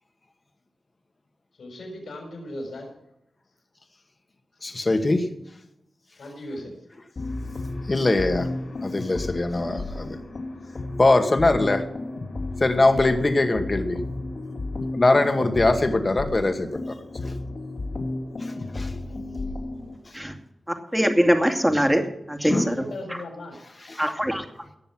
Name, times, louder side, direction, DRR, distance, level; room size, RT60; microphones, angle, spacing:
voice 1, 1.6-2.9 6.2-6.7 22.4-23.5, left 1 dB, 85° left, 1 dB, 6.1 m, -37 dB
voice 2, 4.6-5.3 7.9-8.5 8.8-10.2 11.0-11.9 12.6-14.0 14.9-16.9 17.2-17.3 18.4-18.9 22.4-22.7 23.9-24.0, left 2 dB, 40° left, 6 dB, 2.0 m, -22 dB
sound 1, 7.2-20.0, left 2 dB, 65° left, 3.2 m, -33 dB
voice 3, 20.9-22.0 22.3-22.7 24.0-24.4, equal, 5° right, 4 dB, 2.4 m, -21 dB
18.0 x 6.9 x 6.2 m, 0.85 s
cardioid pair, 45°, 0 cm